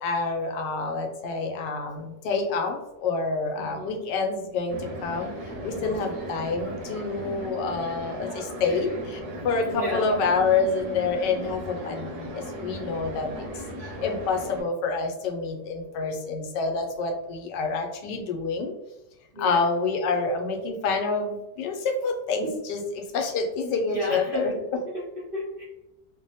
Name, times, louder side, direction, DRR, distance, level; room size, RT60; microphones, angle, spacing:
voice 1, 0.0-13.5 13.8-18.7 19.4-24.8, left 4 dB, 80° left, 3 dB, 1.2 m, -28 dB
voice 2, 3.6-4.1 7.6-7.7 8.7-9.0 9.6-10.2 19.3-19.7 22.4-22.6 23.9-24.6 24.9-25.6, equal, 55° right, -8 dB, 0.6 m, -33 dB
sound 1, 4.7-14.6, equal, 70° right, 1.1 m, -37 dB
3.2 x 2.1 x 2.6 m, 0.94 s
omnidirectional pair, 1.9 m